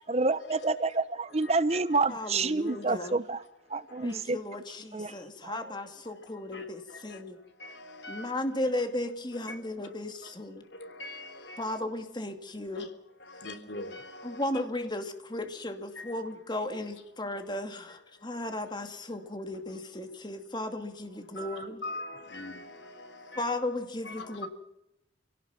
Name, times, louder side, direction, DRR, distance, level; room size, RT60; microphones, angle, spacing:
voice 1, 0.1-3.4 3.7-4.4 4.9-5.1 5.4-5.7, right 3 dB, 35° right, 15 dB, 0.8 m, -28 dB
voice 2, 2.1-3.1 4.0-7.4 8.1-10.6 11.6-12.9 14.2-21.8 23.4-24.5, left 1 dB, 25° left, 6 dB, 2.5 m, -35 dB
voice 3, 11.0-11.6 12.7-12.8 13.4-14.1 21.4-22.6 23.3-23.4 24.0-24.5, left 2 dB, 65° left, 8 dB, 3.3 m, -40 dB
28.5 x 18.0 x 6.0 m, 0.82 s
head